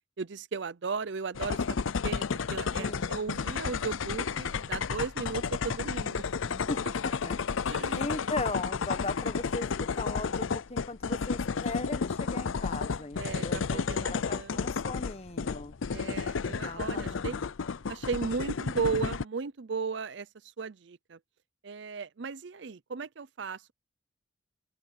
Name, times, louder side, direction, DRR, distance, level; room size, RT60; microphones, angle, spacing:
voice 1, 0.2-1.8 2.0-2.2 2.5-6.2 7.7-8.1 13.2-14.7 15.9-17.4 17.9-20.3 20.6-21.2 21.6-23.7, right 5 dB, 60° right, 0.6 m, -36 dB
sound 1, 1.4-19.2, left 5 dB, 80° left, 0.6 m, -32 dB
voice 2, 2.8-3.1 6.5-7.4 7.9-15.7 16.4-17.4, left 2 dB, 30° left, 1.4 m, -38 dB
open air
head